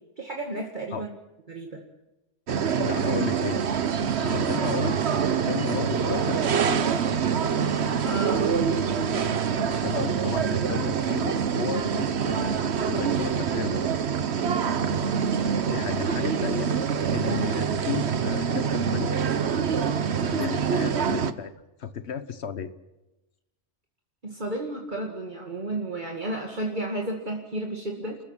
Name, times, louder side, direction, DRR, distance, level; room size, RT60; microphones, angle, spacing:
voice 1, 0.2-1.1 1.5-1.8 7.7-8.5 14.4-14.7 24.2-28.2, right 2 dB, 45° right, 1 dB, 2.2 m, -32 dB
sound 1, 2.5-21.3, right 7 dB, 75° right, 1.2 m, -25 dB
voice 2, 2.8-3.6 4.2-6.8 9.8-13.8 15.4-16.7 17.1-19.2 20.1-21.5 21.8-22.7, left 7 dB, 75° left, 12 dB, 1.3 m, -33 dB
29.5 x 14.5 x 8.9 m, 1.0 s
omnidirectional pair, 1.1 m